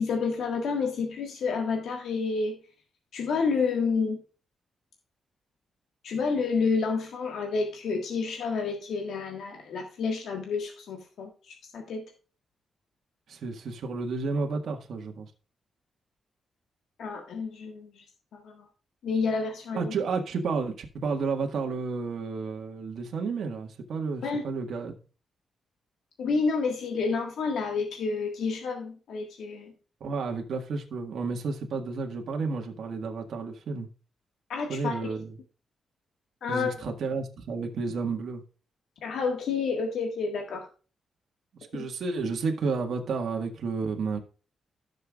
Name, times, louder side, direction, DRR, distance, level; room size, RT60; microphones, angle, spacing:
voice 1, 0.0-2.6 3.1-4.2 6.0-12.0 17.0-18.0 18.3-18.6 19.0-19.9 24.2-24.4 26.2-29.7 34.5-35.0 36.4-36.7 39.0-40.7 41.7-41.8, left 4 dB, 90° left, 1.6 m, -29 dB
voice 2, 13.3-15.3 19.7-25.0 30.0-33.9 34.7-35.3 36.5-38.4 41.5-44.2, right 4 dB, 70° right, 1.6 m, -31 dB
15.5 x 6.8 x 2.4 m
wide cardioid pair, 135°, 0 cm